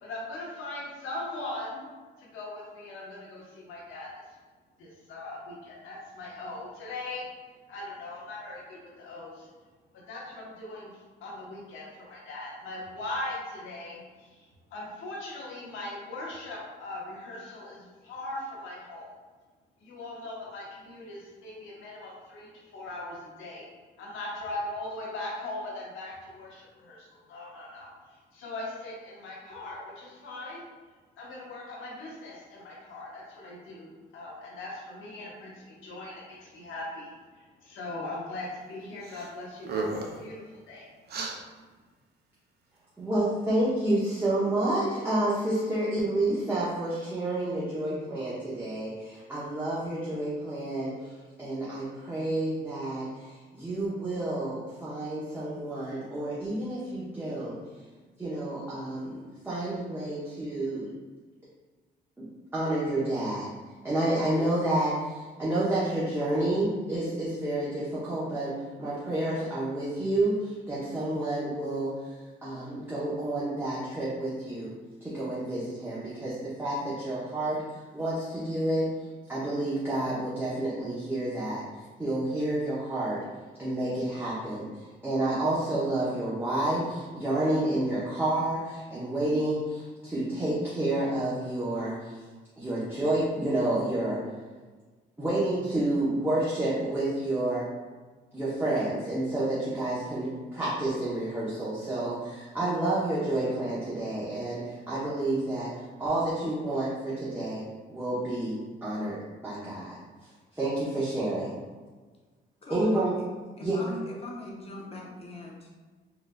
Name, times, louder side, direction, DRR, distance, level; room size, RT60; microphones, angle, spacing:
voice 1, 0.0-1.9 2.2-4.1 4.8-7.3 7.7-9.5 10.1-10.9 11.2-19.1 19.8-23.7 24.0-27.9 28.3-30.6 31.2-33.9 34.1-40.9, left 2 dB, 85° left, -4 dB, 1.0 m, -40 dB
sound 1, 39.0-39.3 39.6-40.2 41.1-41.4, right 3 dB, 55° right, 0.5 m, -33 dB
voice 2, 43.0-51.1 51.4-57.6 58.2-60.9 62.2-62.3 62.5-63.5 63.8-74.7 75.0-77.6 77.9-78.9 79.3-81.7 82.0-83.2 83.6-92.2 92.6-94.2 95.2-97.7 98.3-107.6 107.9-110.0 110.5-111.6 112.7-113.1 113.6-113.8, right 1 dB, 10° right, -9 dB, 0.8 m, -29 dB
voice 3, 112.6-113.3 113.6-115.7, left 1 dB, 30° left, -2 dB, 0.7 m, -41 dB
3.7 x 2.4 x 2.2 m, 1.4 s
cardioid pair, 90°, 20 cm